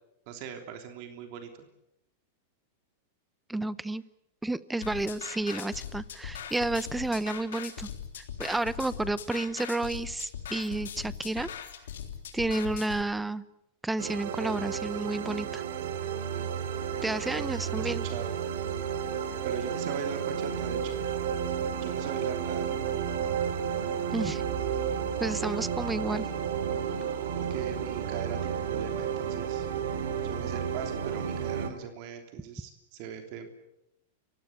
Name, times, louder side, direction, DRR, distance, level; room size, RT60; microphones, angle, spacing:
voice 1, 0.3-1.7 16.9-18.3 19.4-21.0 21.8-22.8 27.0-27.2 27.5-29.7 30.2-33.5, right 7 dB, 50° right, 5 dB, 3.2 m, -40 dB
voice 2, 3.5-4.0 4.4-7.9 8.2-11.5 12.3-13.4 13.8-15.6 17.0-18.0 24.1-24.4 25.2-26.3, right 2 dB, 5° right, 17 dB, 0.8 m, -31 dB
sound 1, 4.8-13.0, left 9 dB, 80° left, 3.4 m, -40 dB
sound 2, 14.0-31.7, right 8 dB, 75° right, 2.9 m, -32 dB
29.0 x 16.0 x 8.6 m, 0.84 s
hypercardioid pair, 130°, 0 cm